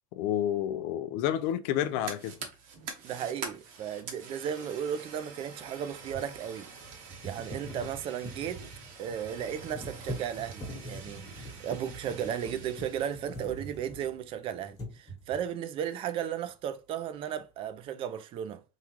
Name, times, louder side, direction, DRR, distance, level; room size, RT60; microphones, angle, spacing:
voice 1, 0.1-2.3, left 11 dB, 60° left, 0.4 m, -29 dB
Fire, 1.7-13.2, right 5 dB, 50° right, 1.0 m, -46 dB
sound 1, 2.4-2.5 5.6-14.4 14.7-15.5, right 1 dB, 20° left, 1.3 m, -44 dB
voice 2, 3.0-6.7 7.2-8.6 9.0-18.6, right 9 dB, 35° right, 0.4 m, -35 dB
3.6 x 2.3 x 3.0 m
supercardioid pair, 145°, 17 cm